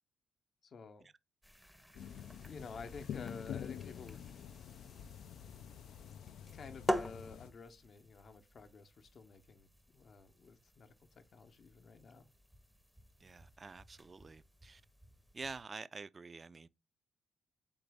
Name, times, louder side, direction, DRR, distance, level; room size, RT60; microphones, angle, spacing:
voice 1, 0.6-1.1 2.4-4.2 6.5-12.3, left 4 dB, 50° left, 0.7 m, -51 dB
sound 1, 1.4-15.6, equal, ahead, 0.6 m, -46 dB
sound 2, 1.9-7.5, left 9 dB, 75° left, 0.3 m, -47 dB
voice 2, 13.2-14.8 15.3-16.7, right 4 dB, 30° right, 0.3 m, -48 dB
3.9 x 3.9 x 3.4 m
cardioid pair, 90°, 0 cm